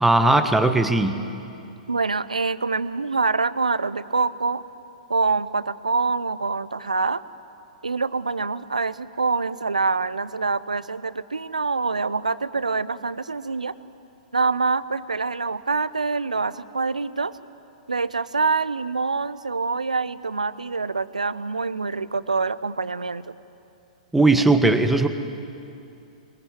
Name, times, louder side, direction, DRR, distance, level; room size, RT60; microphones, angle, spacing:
voice 1, 0.0-1.2 24.1-25.1, right 2 dB, 5° right, 8 dB, 1.4 m, -18 dB
voice 2, 1.9-4.6 5.1-7.2 7.8-13.7 14.3-17.4 17.9-23.3, right 4 dB, 80° right, 16 dB, 0.7 m, -25 dB
22.5 x 22.0 x 9.3 m, 2.7 s
figure-of-eight pair, 110°, 4 cm